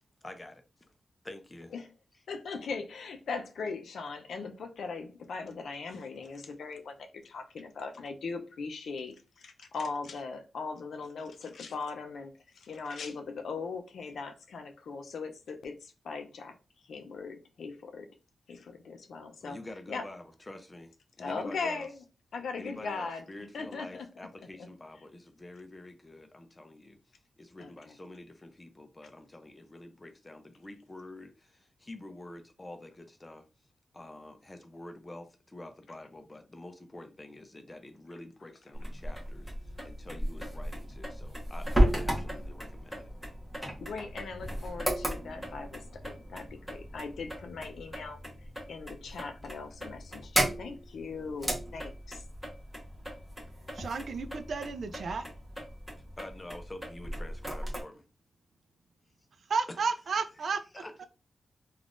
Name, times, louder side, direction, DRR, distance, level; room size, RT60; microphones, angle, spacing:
voice 1, 0.2-0.6 1.2-1.7 19.4-21.9 22.6-27.0 27.4-33.5 33.9-43.1 56.2-58.0 60.1-60.2 60.7-61.0, left 1 dB, 20° left, 0.5 m, -47 dB
voice 2, 2.3-16.5 16.8-18.1 18.5-19.6 19.9-20.0 21.2-22.0 22.3-23.2 23.5-24.1 24.6-24.7 27.6-27.9 43.8-48.2 48.7-52.2, left 4 dB, 85° left, 0.5 m, -39 dB
sound 1, 38.7-57.8, equal, ahead, 0.9 m, -35 dB
voice 3, 53.7-55.3 59.5-60.6 61.0-61.1, right 5 dB, 60° right, 0.4 m, -32 dB
3.5 x 2.4 x 2.4 m
wide cardioid pair, 145°, 0 cm